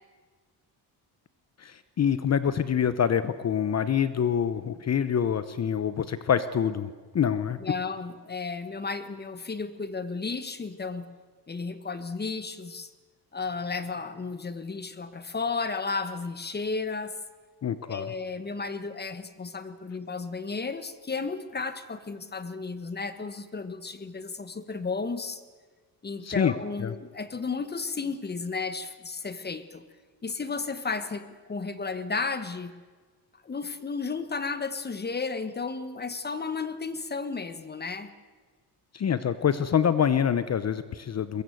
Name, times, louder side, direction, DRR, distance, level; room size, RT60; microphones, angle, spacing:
voice 1, 1.6-6.9 7.1-7.6 17.6-18.1 26.2-26.5 26.8-26.9 38.9-41.4, left 8 dB, 40° left, 13 dB, 0.9 m, -26 dB
voice 2, 7.6-11.1 11.5-12.9 13.3-17.1 17.9-25.4 26.0-29.8 30.2-32.7 33.4-38.1, left 4 dB, 25° left, 12 dB, 1.2 m, -33 dB
22.5 x 22.0 x 7.8 m, 1.5 s
cardioid pair, 145°, 41 cm